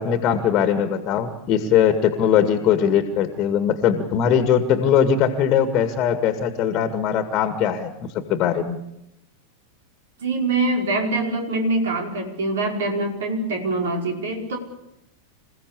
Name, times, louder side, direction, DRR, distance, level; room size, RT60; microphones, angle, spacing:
voice 1, 0.0-8.8, left 8 dB, 35° left, 9 dB, 2.0 m, -20 dB
voice 2, 10.2-14.6, right 2 dB, 60° right, 3 dB, 5.0 m, -24 dB
27.5 x 16.0 x 8.5 m, 0.85 s
figure-of-eight pair, 90°, 0 cm